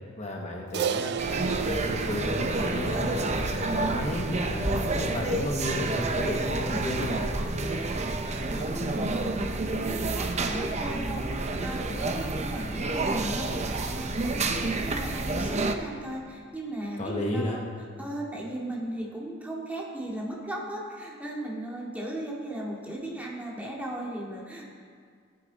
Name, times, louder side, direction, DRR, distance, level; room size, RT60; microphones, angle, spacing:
voice 1, 0.2-7.3 17.0-17.6, left 1 dB, 35° left, -1 dB, 1.2 m, -33 dB
Crash cymbal, 0.7-5.3, right 7 dB, 55° right, 0.4 m, -35 dB
sound 1, 1.2-15.7, right 2 dB, 35° right, 0.7 m, -29 dB
voice 2, 8.5-17.7 18.0-24.7, right 1 dB, 10° right, -4 dB, 2.1 m, -37 dB
18.0 x 8.7 x 4.1 m, 2.1 s
head